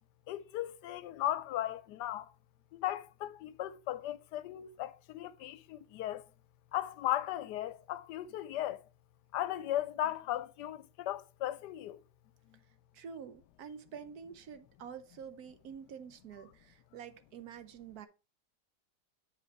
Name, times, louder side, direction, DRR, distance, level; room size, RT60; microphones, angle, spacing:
voice 1, 0.3-2.3 2.7-6.2 6.7-8.8 9.3-12.0 12.5-12.6, left 13 dB, 80° left, 1.1 m, -36 dB
voice 2, 12.9-18.1, right 7 dB, 65° right, 1.2 m, -48 dB
7.6 x 5.2 x 4.5 m
omnidirectional pair, 1.8 m